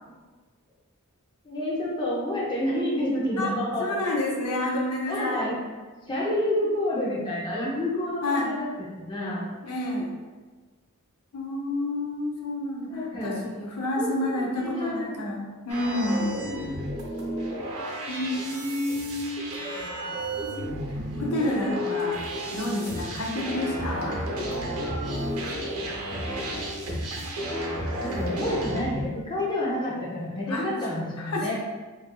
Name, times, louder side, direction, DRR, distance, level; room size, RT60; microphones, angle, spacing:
voice 1, 1.4-4.0 5.1-5.6 6.1-9.6 12.9-13.5 14.0-15.2 23.2-23.4 28.0-31.5, left 1 dB, 20° left, -5 dB, 0.6 m, -29 dB
voice 2, 3.8-5.5 8.2-8.6 9.6-10.1 11.3-16.4 18.1-19.5 20.9-22.2 22.5-24.2 30.5-31.5, left 1 dB, 75° left, -2 dB, 0.7 m, -29 dB
sound 1, 15.7-29.1, equal, 80° right, 0.8 m, -32 dB
4.6 x 2.5 x 2.3 m, 1.3 s
head